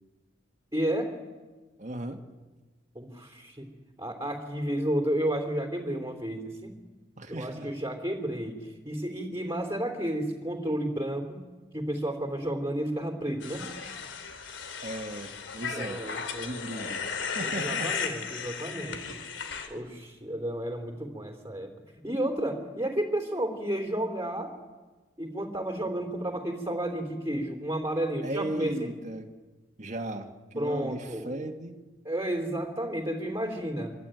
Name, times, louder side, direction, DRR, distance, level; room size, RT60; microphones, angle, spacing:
voice 1, 0.7-1.2 3.0-3.7 4.0-6.7 7.3-11.5 11.7-13.7 15.7-16.9 17.4-19.0 19.7-21.7 22.0-24.5 25.2-28.9 30.6-31.3 32.1-33.9, right 1 dB, 15° right, 4 dB, 3.3 m, -32 dB
voice 2, 1.8-2.2 7.2-7.7 14.8-16.0 16.4-17.9 28.2-29.3 29.8-31.8, right 1 dB, 40° right, 4 dB, 1.8 m, -37 dB
sound 1, 13.4-19.7, left 6 dB, 90° left, 3.1 m, -35 dB
25.5 x 25.0 x 9.2 m, 1.3 s
head